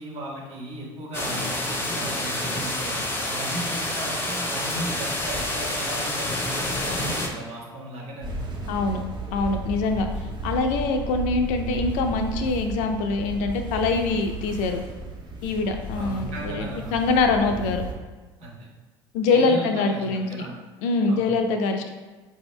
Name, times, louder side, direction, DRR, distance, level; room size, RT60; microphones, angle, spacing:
voice 1, 0.0-3.0 3.2-8.8 15.9-16.9 18.4-18.7 19.2-20.5 21.1-21.3, right 1 dB, 55° right, -3 dB, 1.3 m, -36 dB
sound 1, 1.1-7.3, left 1 dB, 15° left, 0.7 m, -28 dB
sound 2, 8.2-17.9, right 2 dB, 35° right, 0.9 m, -34 dB
voice 2, 8.7-9.0 9.3-10.1 10.4-14.8 15.4-17.8 19.1-20.3 20.8-21.9, left 3 dB, 65° left, 5 dB, 0.5 m, -24 dB
4.2 x 2.7 x 3.1 m, 1.3 s
hypercardioid pair, 70°, 13 cm